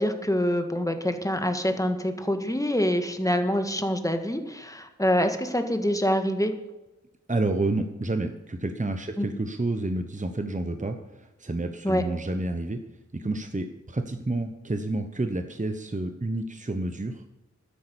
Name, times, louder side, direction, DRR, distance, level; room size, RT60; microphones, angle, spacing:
voice 1, 0.0-6.5 9.2-9.3 11.8-12.0, equal, 10° left, 6 dB, 1.8 m, -25 dB
voice 2, 7.3-12.8 13.1-17.3, right 2 dB, 25° right, 6 dB, 1.0 m, -29 dB
12.5 x 10.5 x 7.0 m, 1.0 s
wide cardioid pair, 65°, 30 cm